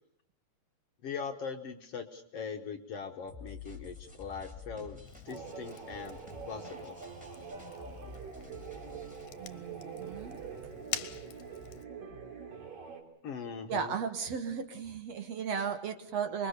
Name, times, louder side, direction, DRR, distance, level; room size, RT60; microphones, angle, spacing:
voice 1, 1.0-6.2 6.5-7.0 13.2-13.9, left 6 dB, 60° left, 5 dB, 1.9 m, -41 dB
sound 1, 3.3-9.3, left 3 dB, ahead, 2.4 m, -50 dB
Fire, 5.0-11.8, left 11 dB, 85° left, 2.8 m, -46 dB
sound 2, 5.3-13.0, right 6 dB, 90° right, 5.0 m, -45 dB
voice 2, 9.4-10.4 13.7-16.5, right 6 dB, 55° right, 8 dB, 2.3 m, -35 dB
26.5 x 22.0 x 6.7 m, 0.68 s
omnidirectional pair, 3.8 m